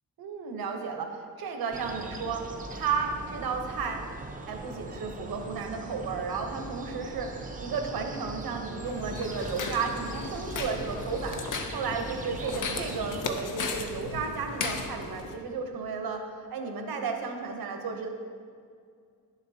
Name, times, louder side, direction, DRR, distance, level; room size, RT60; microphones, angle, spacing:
voice 1, 0.2-4.1 4.5-11.4 11.7-18.1, right 5 dB, 85° right, 4 dB, 1.0 m, -33 dB
sound 1, 1.7-13.2, right 3 dB, 25° right, 0.5 m, -40 dB
sound 2, 8.8-15.3, left 4 dB, 60° left, 0.7 m, -36 dB
10.5 x 7.3 x 2.8 m, 2.2 s
wide cardioid pair, 170°, 35 cm